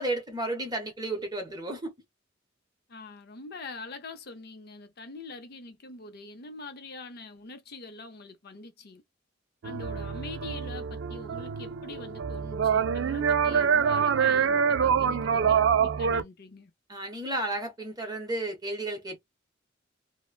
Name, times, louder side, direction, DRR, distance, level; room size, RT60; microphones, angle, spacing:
voice 1, 0.0-1.9 16.9-19.2, right 1 dB, 20° right, 1.1 m, -32 dB
voice 2, 2.9-9.0 9.6-16.7, left 3 dB, 55° left, 0.6 m, -44 dB
sound 1, 9.6-16.2, right 7 dB, 70° right, 0.4 m, -25 dB
3.2 x 2.1 x 2.3 m
head